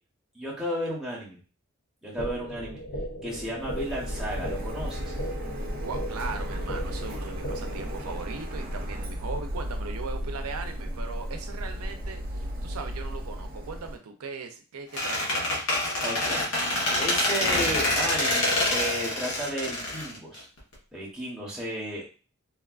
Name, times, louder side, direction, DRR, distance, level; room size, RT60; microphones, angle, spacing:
voice 1, 0.3-1.4 2.0-2.8 3.2-5.0 16.0-16.5 16.8-20.5 20.9-22.0, equal, ahead, -6 dB, 0.8 m, -33 dB
sound 1, 2.2-8.2, equal, 45° left, 0.4 m, -37 dB
Printer, 3.6-13.9, equal, 40° right, 0.6 m, -34 dB
voice 2, 5.8-15.7, right 4 dB, 85° right, 6 dB, 0.5 m, -39 dB
Squeak, 14.9-20.7, left 1 dB, 80° left, 1.0 m, -26 dB
3.4 x 2.3 x 2.3 m, 0.36 s
head